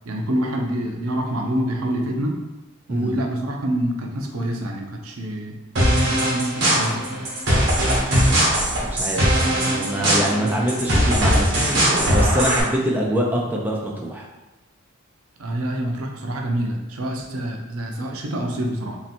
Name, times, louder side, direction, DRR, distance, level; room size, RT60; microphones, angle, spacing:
voice 1, 0.1-2.4 2.9-5.6 6.0-7.2 15.4-19.0, right 1 dB, 85° right, 2 dB, 0.6 m, -26 dB
sound 1, 5.8-12.6, equal, 55° right, 1.4 m, -20 dB
voice 2, 8.8-14.3, equal, 10° right, -2 dB, 0.5 m, -25 dB
3.1 x 2.9 x 4.2 m, 1.1 s
head